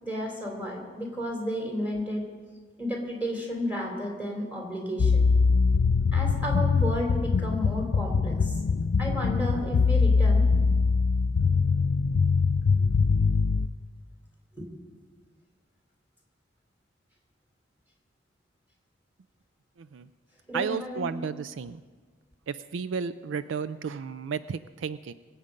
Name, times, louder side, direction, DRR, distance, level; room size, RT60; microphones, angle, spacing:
voice 1, 0.0-2.2 2.8-5.3 6.1-8.6 9.0-10.4 14.5-14.6 20.5-21.1, equal, 10° right, -1 dB, 3.1 m, -32 dB
sound 1, 5.0-13.7, left 4 dB, 60° left, 0.4 m, -23 dB
voice 2, 19.8-20.1 20.5-21.8 22.5-25.1, right 6 dB, 70° right, 14 dB, 0.4 m, -33 dB
23.5 x 8.5 x 5.2 m, 1.5 s
head